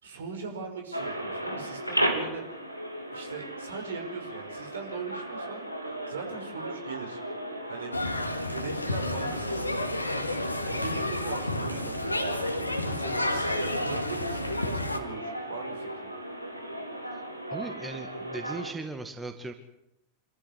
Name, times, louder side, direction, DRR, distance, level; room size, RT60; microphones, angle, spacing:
voice 1, 0.0-2.5 3.1-7.2 7.7-7.9 8.4-9.7 10.6-16.1, right 5 dB, 65° right, 4 dB, 5.4 m, -40 dB
sound 1, 0.9-18.7, right 1 dB, 90° right, 3.0 m, -36 dB
sound 2, 7.9-15.0, left 1 dB, 85° left, 2.2 m, -31 dB
voice 2, 17.5-19.5, right 3 dB, 10° right, 7 dB, 2.0 m, -38 dB
26.5 x 14.5 x 10.0 m, 0.83 s
figure-of-eight pair, 90°, 0 cm